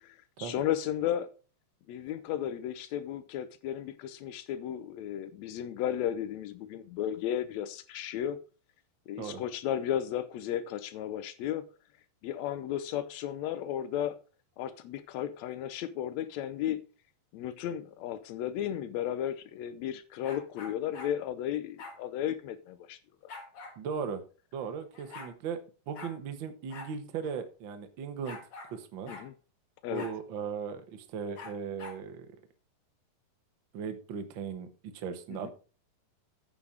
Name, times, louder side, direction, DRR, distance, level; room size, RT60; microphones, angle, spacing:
voice 1, 0.0-1.3 1.9-8.4 9.1-11.6 12.2-14.2 14.6-16.8 17.3-23.0 29.0-29.3 29.8-30.1 35.3-35.5, left 10 dB, 85° left, 1.5 m, -34 dB
sound 1, 20.2-21.1 21.8-22.0 23.3-23.8 24.6-24.7 24.9-25.3 25.9-26.1 26.7-26.9 27.2-27.3 28.2-28.7 29.1-29.3 29.9-30.2 31.3-32.0, left 3 dB, 45° left, 2.7 m, -45 dB
voice 2, 23.8-24.2 24.5-25.6 25.9-28.4 28.6-29.1 29.9-32.4 33.7-35.5, right 6 dB, 90° right, 1.0 m, -37 dB
9.7 x 5.9 x 4.9 m
omnidirectional pair, 4.0 m